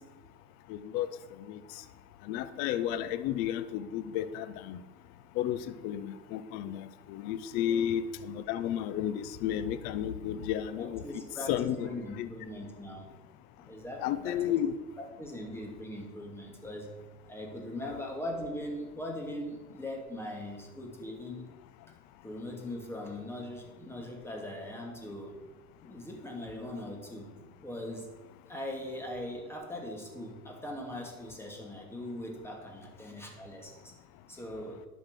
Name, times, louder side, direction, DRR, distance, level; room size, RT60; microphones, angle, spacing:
voice 1, 0.7-1.1 1.5-1.6 2.3-4.8 5.4-11.0 11.5-11.9 12.2-12.3 14.0-14.7, left 10 dB, 25° left, 13 dB, 0.3 m, -32 dB
voice 2, 10.8-13.1 13.6-14.5 15.0-16.9 17.2-21.5 22.2-25.4 25.8-27.3 27.6-28.1 28.5-33.9 34.3-34.9, left 1 dB, 5° left, 0 dB, 2.4 m, -40 dB
10.5 x 6.2 x 6.3 m, 1.1 s
hypercardioid pair, 95°, 47 cm